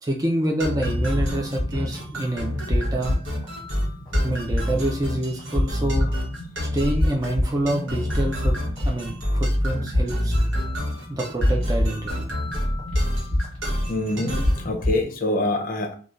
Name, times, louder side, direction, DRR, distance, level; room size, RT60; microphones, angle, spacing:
voice 1, 0.0-3.1 4.2-6.1 6.6-8.6 8.8-10.4 11.1-12.3, right 1 dB, 20° right, 0 dB, 0.4 m, -27 dB
sound 1, 0.6-14.7, equal, 70° right, 1.1 m, -28 dB
sound 2, 0.8-15.0, left 1 dB, 5° left, 1.4 m, -28 dB
voice 2, 13.9-16.0, left 1 dB, 45° left, 3 dB, 0.5 m, -25 dB
3.1 x 2.3 x 2.4 m, 0.43 s
head